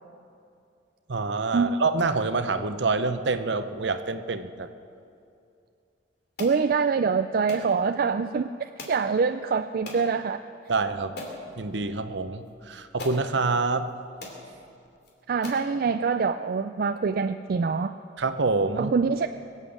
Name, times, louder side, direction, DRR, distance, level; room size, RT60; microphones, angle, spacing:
voice 1, 1.1-4.7 10.7-11.2 11.6-13.9 18.2-18.9, right 3 dB, 70° right, 10 dB, 0.8 m, -26 dB
sound 1, 6.4-6.6 7.5-7.7 8.8-9.0 9.9-10.1 10.6-10.7 11.2-11.4 12.5-12.6 13.0-13.2 13.9-14.0 14.2-14.4 15.0-15.1 15.4-15.7, left 2 dB, 60° left, 2.8 m, -39 dB
voice 2, 6.4-8.5 8.9-10.4 15.3-17.9 18.8-19.3, right 5 dB, 50° right, 9 dB, 0.4 m, -25 dB
22.0 x 8.3 x 7.1 m, 2.5 s
head